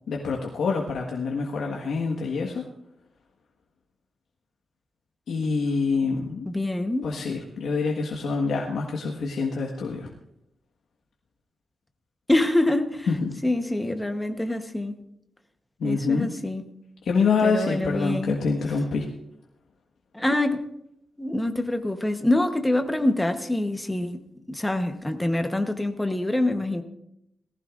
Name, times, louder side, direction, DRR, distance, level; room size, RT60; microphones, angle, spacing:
voice 1, 0.1-2.6 5.3-6.5 7.0-10.1 13.1-13.4 15.8-16.3 17.0-19.1, left 4 dB, 85° left, 1.5 m, -26 dB
voice 2, 6.5-7.1 12.3-13.1 13.4-14.9 15.8-16.6 17.4-18.3 20.1-20.6 21.2-24.2 24.5-26.8, left 1 dB, 10° left, 1.1 m, -25 dB
19.0 x 15.0 x 2.5 m
wide cardioid pair, 155°, 0 cm